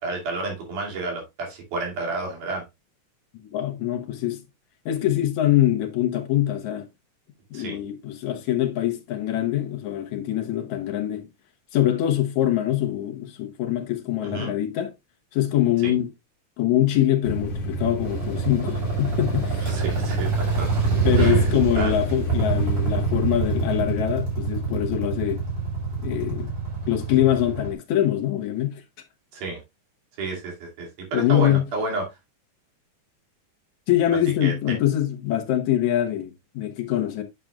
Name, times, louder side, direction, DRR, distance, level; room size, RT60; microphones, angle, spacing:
voice 1, 0.0-2.6 7.5-7.8 14.2-14.5 15.8-15.9 19.6-20.3 20.6-20.7 21.2-21.5 21.8-21.9 29.3-29.6 30.2-32.1 34.4-34.8, right 3 dB, 80° right, 4.2 m, -30 dB
voice 2, 3.4-4.4 4.9-6.9 7.5-11.3 11.7-14.9 15.3-16.1 16.6-19.7 21.0-25.4 26.0-26.5 26.9-28.8 31.1-31.6 33.9-37.2, left 12 dB, 70° left, 2.2 m, -24 dB
sound 1, 17.2-23.8, right 1 dB, 40° left, 2.1 m, -31 dB
sound 2, 18.1-27.7, right 5 dB, 55° right, 5.7 m, -25 dB
8.9 x 6.8 x 2.4 m
omnidirectional pair, 3.6 m